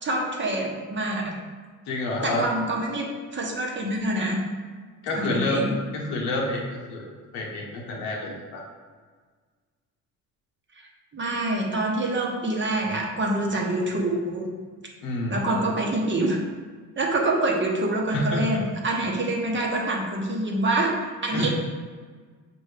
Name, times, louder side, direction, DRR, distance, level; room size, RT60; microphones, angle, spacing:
voice 1, 0.0-1.4 2.2-4.5 5.1-5.8 10.8-14.5 15.3-16.4 17.0-21.5, right 2 dB, 30° right, -1 dB, 0.9 m, -26 dB
voice 2, 1.9-2.5 5.0-5.7 5.9-7.1 7.3-8.6 15.0-15.6 18.1-18.6 21.3-21.5, left 2 dB, 80° left, -2 dB, 1.1 m, -28 dB
5.4 x 2.7 x 3.3 m, 1.5 s
supercardioid pair, 80°, 40 cm